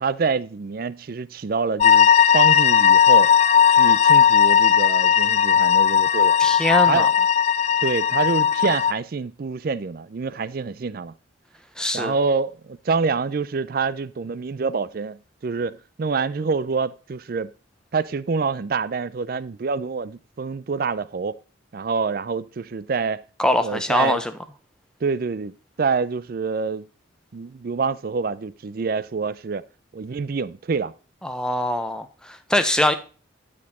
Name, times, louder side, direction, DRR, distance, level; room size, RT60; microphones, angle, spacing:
voice 1, 0.0-3.3 3.7-6.4 6.9-7.1 7.8-11.1 11.9-17.5 17.9-21.4 21.7-23.2 23.6-24.2 25.0-26.9 27.3-29.6 29.9-30.9, right 4 dB, 45° right, 0.4 m, -26 dB
sound 1, 1.8-8.9, left 8 dB, 35° left, 0.3 m, -16 dB
voice 2, 6.4-7.1 11.8-12.1 23.4-24.3 31.2-32.9, left 1 dB, 5° left, 0.6 m, -23 dB
10.5 x 4.4 x 4.2 m
head